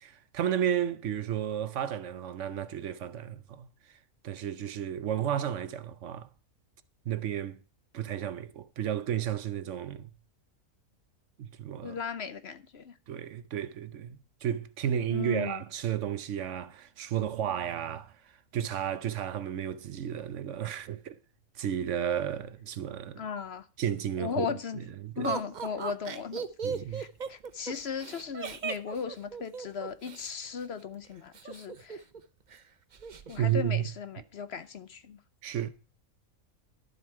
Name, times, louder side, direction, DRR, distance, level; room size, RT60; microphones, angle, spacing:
voice 1, 0.0-4.0 4.2-6.3 7.1-7.6 7.9-10.1 11.4-12.0 13.1-21.2 21.6-23.2 23.8-25.3 26.6-27.0 33.4-33.9 35.4-35.7, right 10 dB, 65° right, 0.9 m, -33 dB
voice 2, 11.8-13.0 15.1-15.6 23.2-23.7 24.2-24.8 25.2-26.5 26.9-32.0 33.3-35.2, left 6 dB, 55° left, 0.9 m, -37 dB
Laughter, 25.2-30.3 31.3-32.2 32.5-32.6 32.9-33.4, right 6 dB, 40° right, 0.7 m, -37 dB
12.0 x 7.5 x 4.7 m
omnidirectional pair, 1.4 m